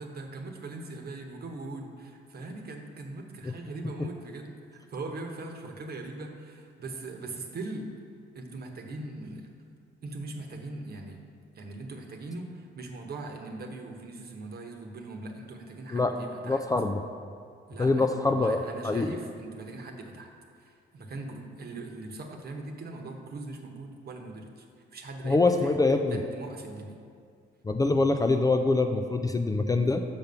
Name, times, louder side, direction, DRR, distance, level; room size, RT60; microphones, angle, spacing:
voice 1, 0.0-7.9 8.3-9.5 10.0-11.2 11.6-16.6 17.7-20.3 20.6-24.6 24.9-25.8 26.1-27.0, right 2 dB, 50° right, 3 dB, 1.1 m, -40 dB
voice 2, 16.5-17.0 17.8-19.1 25.2-26.2 27.6-30.0, left 3 dB, 20° left, 6 dB, 0.4 m, -24 dB
5.9 x 5.2 x 6.8 m, 2.3 s
cardioid pair, 90°, 20 cm